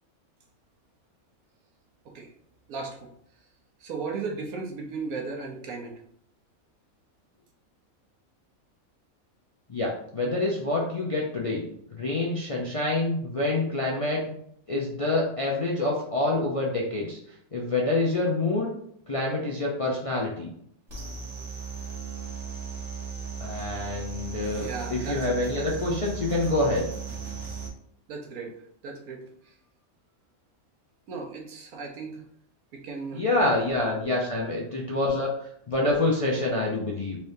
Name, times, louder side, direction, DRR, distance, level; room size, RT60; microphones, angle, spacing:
voice 1, 2.7-3.1 3.8-6.0 24.6-25.3 25.6-25.7 28.1-29.2 31.1-32.2 32.7-33.2, right 4 dB, 80° right, 2 dB, 1.3 m, -36 dB
voice 2, 9.7-11.7 11.9-14.2 14.7-17.2 17.5-18.7 19.1-20.5 23.4-26.9 33.1-37.2, left 2 dB, 45° left, -4 dB, 0.4 m, -27 dB
sound 1, 20.9-27.7, right 6 dB, 55° right, 1.5 m, -36 dB
4.3 x 3.4 x 2.7 m, 0.69 s
omnidirectional pair, 1.5 m